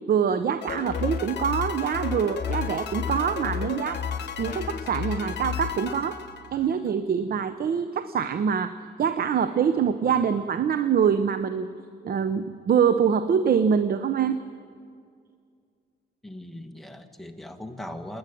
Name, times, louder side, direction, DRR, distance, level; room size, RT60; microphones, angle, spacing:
voice 1, 0.1-4.0 4.4-6.2 6.5-11.7 12.0-14.4, right 7 dB, 50° right, 11 dB, 0.8 m, -24 dB
sound 1, 0.6-6.9, left 8 dB, 60° left, 1.4 m, -37 dB
sound 2, 0.7-5.9, left 7 dB, 40° left, 0.7 m, -33 dB
voice 2, 16.2-18.2, left 1 dB, ahead, 4 dB, 1.7 m, -39 dB
27.0 x 10.5 x 10.0 m, 2.2 s
cardioid pair, 90°, 20 cm